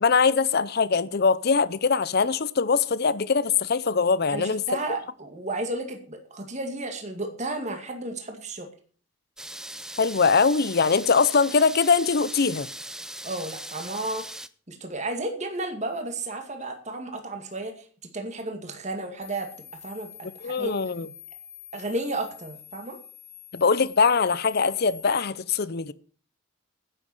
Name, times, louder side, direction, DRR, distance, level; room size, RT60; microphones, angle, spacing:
voice 1, 0.0-4.6 10.0-12.7 20.4-21.1 23.5-25.9, left 5 dB, 50° left, 0.6 m, -22 dB
voice 2, 4.3-8.7 13.2-14.2 14.7-17.7 18.1-19.5 19.8-20.7 21.7-23.0, right 2 dB, 35° right, 2.2 m, -33 dB
sound 1, 9.4-14.5, right 1 dB, 5° right, 0.5 m, -39 dB
sound 2, 19.2-25.2, left 10 dB, 30° left, 2.0 m, -46 dB
11.0 x 8.1 x 7.6 m
head